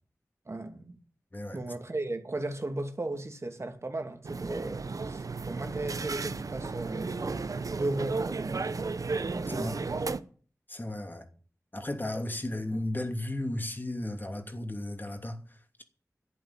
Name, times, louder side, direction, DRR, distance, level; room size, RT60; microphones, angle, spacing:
voice 1, 0.5-1.0 1.5-8.8 9.3-10.0, right 2 dB, 50° right, 2.5 m, -36 dB
sound 1, 4.2-10.2, right 4 dB, 70° right, 0.8 m, -34 dB
voice 2, 10.7-11.3 11.7-15.8, left 1 dB, 35° left, 2.8 m, -35 dB
12.0 x 8.5 x 8.8 m
cardioid pair, 45°, 6 cm